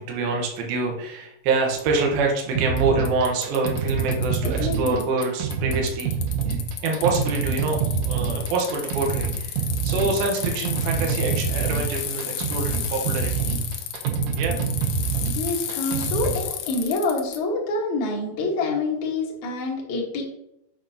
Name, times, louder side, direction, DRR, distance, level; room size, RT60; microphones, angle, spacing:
voice 1, 0.0-6.2 6.5-13.5 14.3-14.6, right 3 dB, 70° right, 1 dB, 2.7 m, -26 dB
Bicycle, 1.8-1.9 2.8-2.9 3.1-5.3 5.5-17.4, left 10 dB, 80° left, 2.6 m, -33 dB
sound 1, 2.6-16.5, right 6 dB, 90° right, 1.8 m, -26 dB
voice 2, 4.4-5.0 15.4-20.2, left 2 dB, 60° left, -3 dB, 2.3 m, -27 dB
8.2 x 5.8 x 2.8 m, 0.76 s
omnidirectional pair, 4.9 m